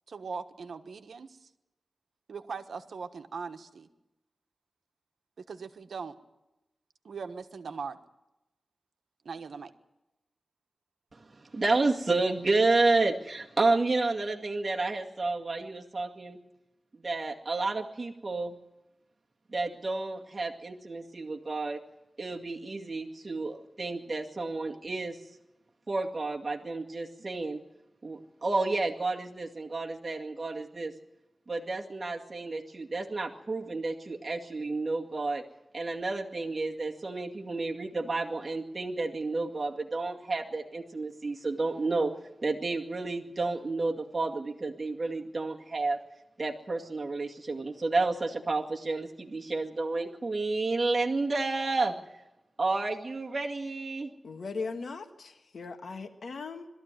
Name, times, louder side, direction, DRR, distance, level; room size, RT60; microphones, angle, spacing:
voice 1, 0.1-1.5 2.3-3.9 5.4-6.2 7.0-8.0 9.2-9.7, right 5 dB, 90° right, 7 dB, 1.3 m, -40 dB
voice 2, 11.1-16.4 16.9-18.6 19.5-21.8 22.2-25.4 25.9-27.6 28.0-30.9 31.5-35.4 35.7-42.1 42.4-46.0 46.4-52.0 52.6-54.1, right 3 dB, 40° right, -1 dB, 2.1 m, -30 dB
voice 3, 54.2-56.7, left 4 dB, 80° left, 6 dB, 1.6 m, -38 dB
21.5 x 13.5 x 9.2 m, 0.96 s
wide cardioid pair, 70°, 0 cm